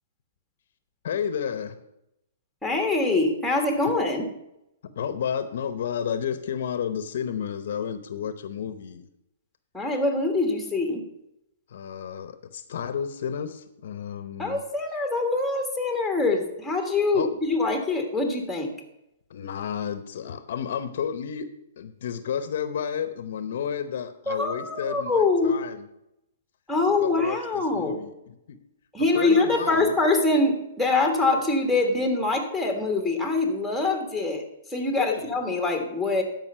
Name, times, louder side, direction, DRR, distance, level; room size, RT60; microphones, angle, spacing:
voice 1, 1.0-1.8 4.8-9.1 11.7-14.6 17.1-17.3 19.3-21.5 21.8-25.9 27.0-28.6 29.1-30.0 35.0-35.4, left 8 dB, 65° left, 12 dB, 0.8 m, -31 dB
voice 2, 2.6-4.3 9.7-11.0 14.4-18.7 24.3-25.5 26.7-28.0 28.9-34.4 34.7-36.2, left 3 dB, ahead, 3 dB, 1.6 m, -24 dB
12.5 x 5.3 x 5.5 m, 0.85 s
hypercardioid pair, 150°, 0 cm